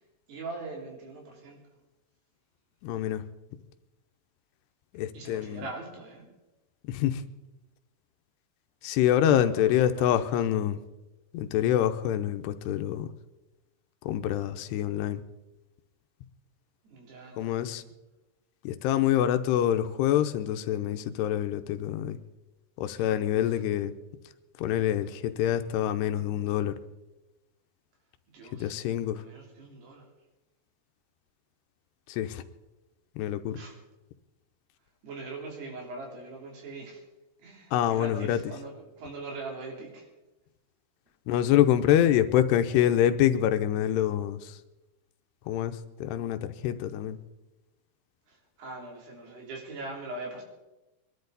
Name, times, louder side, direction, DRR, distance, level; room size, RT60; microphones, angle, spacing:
voice 1, 0.3-1.6 5.1-6.3 9.1-10.3 16.8-17.7 22.9-23.1 23.4-23.6 28.3-28.8 29.1-30.1 33.6-33.7 35.0-37.0 37.4-40.1 42.0-42.2 48.3-50.4, right 3 dB, 75° right, -1 dB, 5.1 m, -42 dB
voice 2, 2.8-3.2 4.9-5.7 6.9-7.2 8.8-10.8 11.3-13.1 14.1-15.2 17.4-17.8 18.6-22.2 22.8-23.9 24.6-26.8 28.5-29.2 32.1-32.4 33.2-33.6 37.7-38.4 41.3-44.6 45.5-47.2, left 11 dB, 85° left, 9 dB, 2.8 m, -26 dB
24.0 x 12.0 x 4.0 m, 1.0 s
omnidirectional pair, 4.8 m